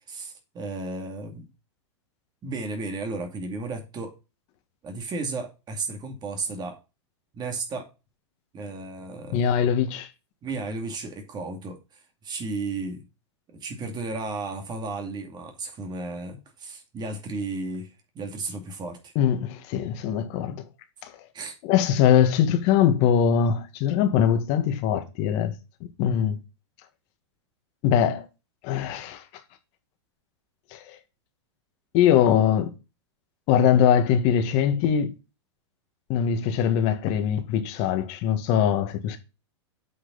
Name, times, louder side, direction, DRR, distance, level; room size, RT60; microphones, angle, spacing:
voice 1, 0.1-1.5 2.4-4.1 4.8-6.8 7.3-7.9 8.5-9.5 10.4-13.0 13.5-17.9 18.1-19.1 21.3-21.6, right 3 dB, 30° right, 2.4 m, -34 dB
voice 2, 9.3-10.1 19.2-20.6 21.0-21.1 21.6-25.5 26.0-26.4 27.8-28.3 28.6-29.2 30.7-31.0 31.9-32.7 33.5-35.1 36.1-39.2, left 9 dB, 45° left, 1.9 m, -22 dB
8.3 x 6.1 x 4.1 m
hypercardioid pair, 105°, 15 cm